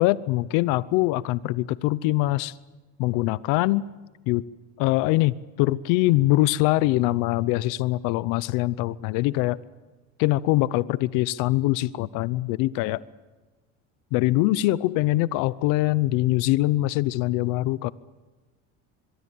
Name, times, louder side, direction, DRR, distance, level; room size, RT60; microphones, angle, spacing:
voice 1, 0.0-2.5 3.0-3.9 4.3-4.4 4.8-9.6 10.2-13.0 14.1-17.9, left 18 dB, 70° left, 19 dB, 0.8 m, -23 dB
24.5 x 23.0 x 8.5 m, 1.2 s
cardioid pair, 125°, 33 cm